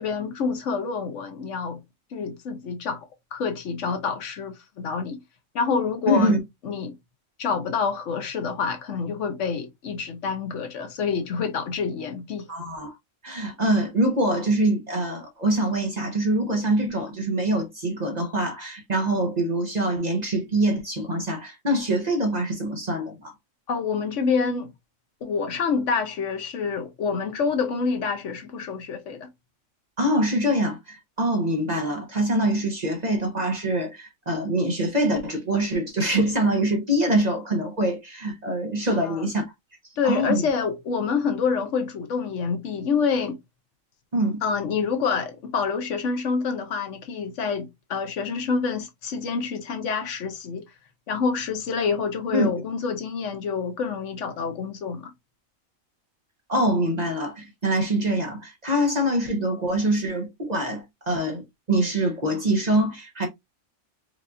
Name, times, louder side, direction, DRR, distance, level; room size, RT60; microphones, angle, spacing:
voice 1, 0.0-1.8 2.1-5.2 5.5-6.4 6.6-6.9 7.4-12.5 23.7-24.7 25.2-29.3 38.9-39.3 40.0-43.4 44.4-50.6 51.1-55.1, left 5 dB, 65° left, 1.0 m, -27 dB
voice 2, 6.1-6.4 12.5-12.9 13.2-23.3 30.0-39.4 40.0-40.4 44.1-44.4 52.3-52.5 56.5-61.4 61.7-63.3, right 1 dB, 35° right, 0.9 m, -24 dB
4.8 x 2.4 x 2.5 m
omnidirectional pair, 1.4 m